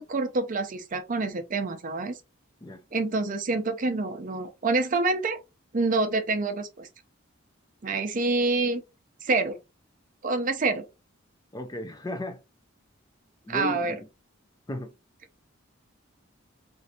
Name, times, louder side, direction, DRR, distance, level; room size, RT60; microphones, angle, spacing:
voice 1, 0.0-2.2 2.9-5.4 5.7-6.9 7.8-8.8 9.2-9.6 10.2-10.9 13.5-14.0, right 3 dB, 40° right, 0.5 m, -27 dB
voice 2, 11.5-12.4 13.4-14.0 14.7-14.9, left 1 dB, 20° left, 0.5 m, -34 dB
3.1 x 2.6 x 2.7 m
head